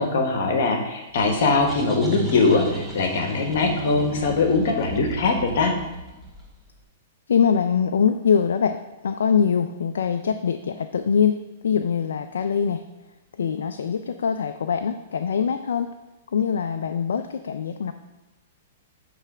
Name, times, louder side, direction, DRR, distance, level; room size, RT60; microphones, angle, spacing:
voice 1, 0.0-5.7, left 3 dB, 65° left, 4 dB, 1.3 m, -21 dB
sound 1, 1.5-6.7, left 1 dB, 5° left, 1.9 m, -35 dB
voice 2, 7.3-12.8 13.4-15.9 16.3-17.9, left 7 dB, 80° left, 8 dB, 0.4 m, -23 dB
9.4 x 3.4 x 6.1 m, 1.1 s
hypercardioid pair, 135°, 0 cm